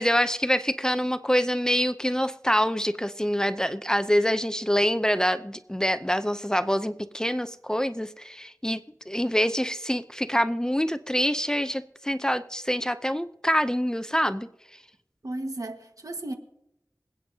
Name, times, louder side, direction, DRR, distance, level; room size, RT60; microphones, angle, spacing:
voice 1, 0.0-8.8 9.1-14.5, equal, 10° left, 0.6 m, -25 dB
voice 2, 15.2-16.3, right 1 dB, 65° right, 1.5 m, -34 dB
26.0 x 8.8 x 2.8 m
wide cardioid pair, 55°, 6 cm